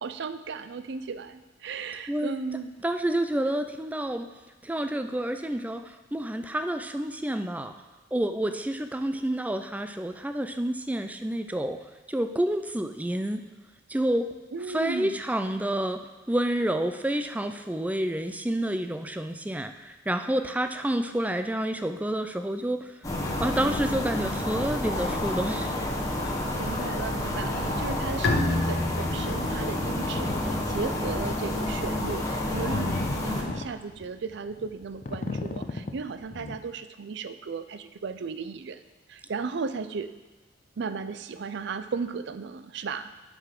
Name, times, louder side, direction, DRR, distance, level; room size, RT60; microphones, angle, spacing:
voice 1, 0.0-2.7 14.5-15.2 26.6-38.8 39.1-40.1 40.8-43.1, right 4 dB, 65° right, 11 dB, 0.5 m, -35 dB
voice 2, 2.1-2.4 2.8-4.3 4.6-7.7 8.1-11.8 12.1-13.4 13.9-14.3 14.7-16.0 16.3-22.9 23.4-25.7, right 1 dB, 10° right, 8 dB, 0.4 m, -29 dB
sound 1, 23.0-33.4, left 1 dB, 20° left, 1.2 m, -30 dB
Bowed string instrument, 28.2-31.7, left 2 dB, 60° left, 0.9 m, -31 dB
sound 2, 30.2-30.4 30.9-31.1 31.6-36.6, left 2 dB, 40° left, 0.6 m, -34 dB
8.0 x 5.9 x 5.9 m, 1.2 s
head